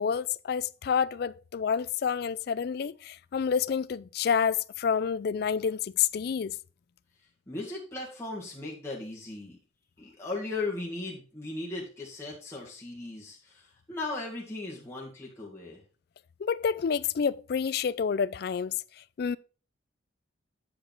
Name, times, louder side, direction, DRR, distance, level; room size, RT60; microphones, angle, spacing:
voice 1, 0.0-6.6 16.4-18.7 19.2-19.4, left 7 dB, 50° left, 0.3 m, -28 dB
voice 2, 7.5-9.6 10.0-15.8, left 2 dB, 15° left, 1.8 m, -37 dB
8.6 x 5.0 x 4.6 m
head